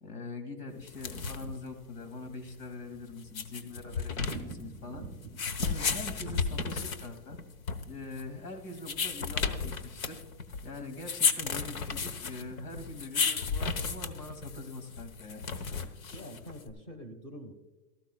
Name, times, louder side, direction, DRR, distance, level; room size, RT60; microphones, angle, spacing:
voice 1, 0.0-5.0 5.6-7.4 7.8-10.2 10.6-15.5 16.1-16.2, left 2 dB, 80° left, 6 dB, 2.6 m, -43 dB
sound 1, 0.8-16.7, left 5 dB, 60° left, 1.2 m, -34 dB
Thunder, 3.1-8.7 8.9-9.0 9.3-9.4 9.7-9.8 10.3-10.6, right 5 dB, 15° right, 0.5 m, -49 dB
voice 2, 16.1-17.5, equal, 15° left, 7 dB, 1.2 m, -45 dB
16.5 x 14.0 x 2.3 m, 1.1 s
hypercardioid pair, 165°, 46 cm